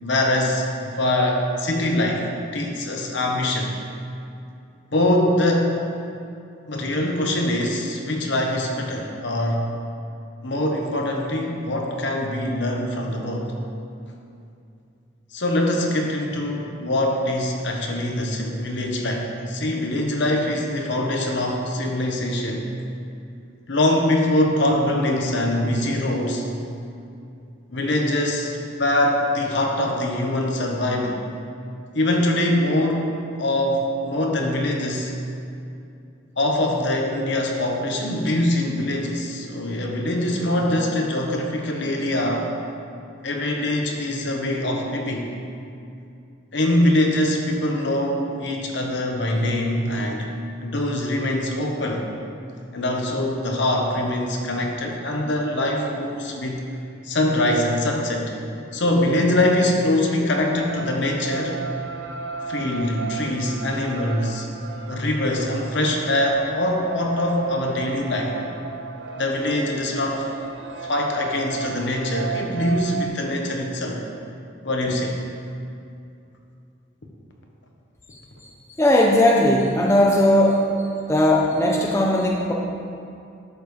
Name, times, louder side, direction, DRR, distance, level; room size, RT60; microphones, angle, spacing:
voice 1, 0.0-2.2 2.5-3.7 4.9-5.8 6.7-9.6 10.4-13.5 15.3-22.7 23.7-26.4 27.7-31.2 31.9-35.1 36.4-42.5 43.2-45.3 46.5-50.3 50.6-52.1 52.7-56.6 57.0-58.3 58.7-61.6 62.5-64.5 64.9-68.3 69.1-70.3 70.8-74.0 74.6-75.2, left 1 dB, 60° left, 1 dB, 1.0 m, -23 dB
sound 1, 60.3-73.1, right 4 dB, 60° right, 0.7 m, -35 dB
voice 2, 78.8-80.6 81.1-82.5, left 1 dB, 15° left, -1 dB, 0.5 m, -18 dB
11.5 x 7.1 x 3.2 m, 2.6 s
head